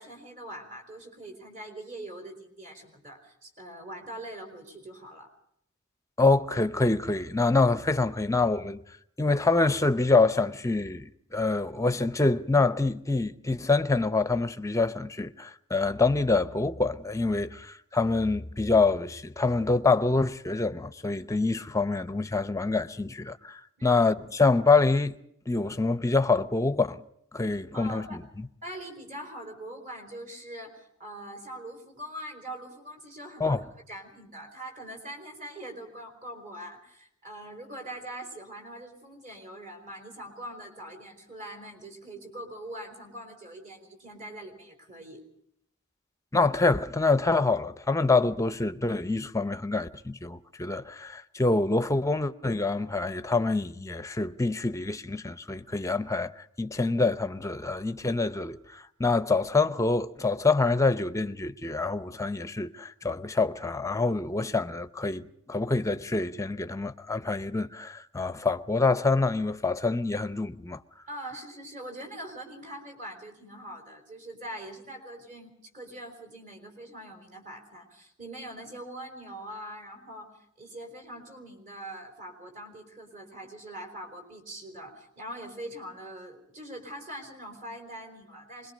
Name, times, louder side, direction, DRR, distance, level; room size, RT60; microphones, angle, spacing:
voice 1, 0.0-5.3 23.8-24.0 27.7-28.2 28.6-45.2 71.1-88.7, right 1 dB, 40° right, 4.5 m, -43 dB
voice 2, 6.2-8.8 9.2-25.1 25.5-27.0 27.3-28.5 33.4-33.6 46.3-56.3 56.6-70.8, left 3 dB, 15° left, 0.7 m, -26 dB
25.0 x 21.5 x 5.1 m
head